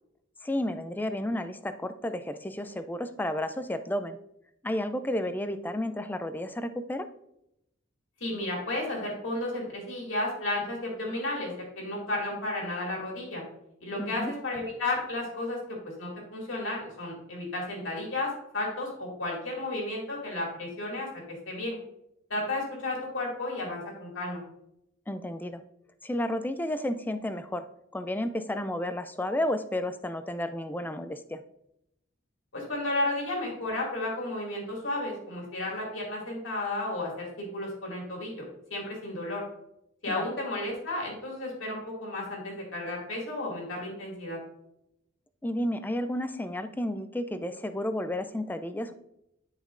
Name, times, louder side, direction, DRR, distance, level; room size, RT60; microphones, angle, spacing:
voice 1, 0.4-4.2 4.6-7.1 14.0-14.3 25.1-25.6 26.0-27.7 27.9-31.4 40.1-40.3 45.4-48.9, left 1 dB, 10° left, 10 dB, 0.3 m, -32 dB
voice 2, 8.2-13.4 13.8-21.1 21.5-21.8 22.3-24.4 32.5-38.4 38.7-39.4 40.0-44.4, left 2 dB, 70° left, -2 dB, 2.4 m, -33 dB
10.5 x 5.0 x 2.5 m, 0.81 s
head